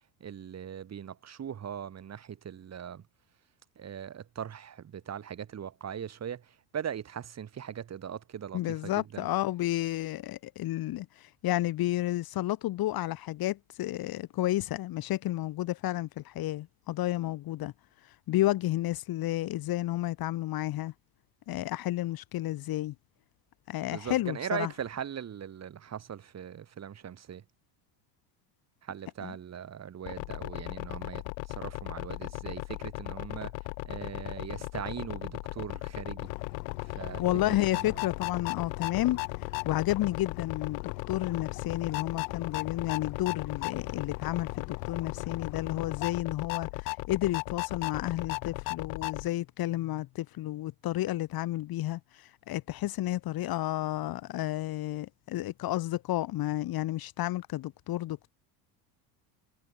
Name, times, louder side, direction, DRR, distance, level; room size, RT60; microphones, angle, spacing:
voice 1, 0.2-3.0 3.8-9.3 23.9-27.4 28.8-33.5 33.8-36.3 36.8-38.0, right 8 dB, 30° right, 2.8 m, -40 dB
voice 2, 8.5-17.7 18.3-20.9 21.5-22.9 23.7-24.7 29.2-29.3 37.2-39.2 39.6-58.3, left 15 dB, 45° left, 1.5 m, -31 dB
sound 1, 30.1-49.3, left 35 dB, 65° left, 0.8 m, -37 dB
sound 2, 36.2-46.2, left 24 dB, 85° left, 5.7 m, -44 dB
supercardioid pair, 115°, 50 cm